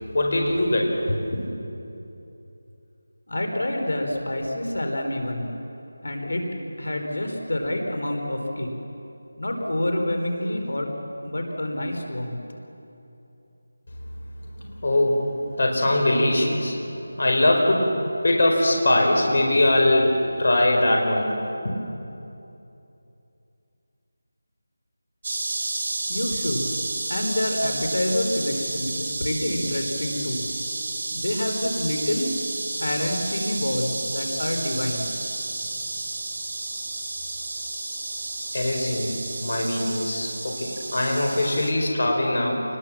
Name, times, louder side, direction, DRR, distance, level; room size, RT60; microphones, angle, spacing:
voice 1, 0.1-1.4 14.6-21.7 38.5-39.1 39.4-42.6, left 1 dB, 50° left, 1 dB, 4.5 m, -22 dB
voice 2, 3.3-5.5 6.0-6.4 6.8-8.7 9.4-10.9 11.2-12.4 26.1-26.7 27.1-30.4 31.1-32.3 32.8-35.1, left 1 dB, 85° left, 3 dB, 4.3 m, -27 dB
sound 1, 25.2-41.7, right 2 dB, 30° right, 2.9 m, -31 dB
29.0 x 21.0 x 7.5 m, 2.8 s
figure-of-eight pair, 175°, 0 cm